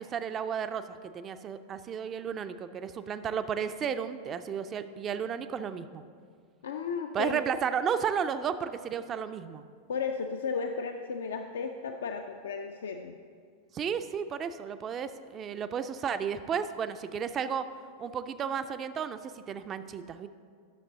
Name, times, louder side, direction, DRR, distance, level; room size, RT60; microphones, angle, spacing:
voice 1, 0.0-6.0 7.1-9.6 13.7-17.7 18.0-20.3, right 7 dB, 25° right, 11 dB, 0.4 m, -33 dB
voice 2, 6.6-7.4 9.9-13.2, left 5 dB, 65° left, 5 dB, 0.4 m, -34 dB
11.0 x 6.6 x 3.8 m, 2.1 s
figure-of-eight pair, 90°, 0 cm